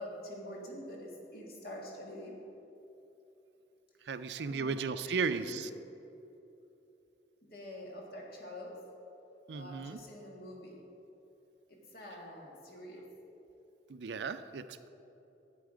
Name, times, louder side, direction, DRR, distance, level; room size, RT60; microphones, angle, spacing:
voice 1, 0.0-2.4 4.4-4.8 5.0-5.7 7.4-8.8 9.5-10.8 11.7-13.2, left 1 dB, 60° left, -1 dB, 1.9 m, -46 dB
voice 2, 4.1-5.7 9.5-10.0 13.9-14.9, right 4 dB, 75° right, 11 dB, 0.5 m, -35 dB
11.5 x 8.5 x 5.0 m, 3.0 s
head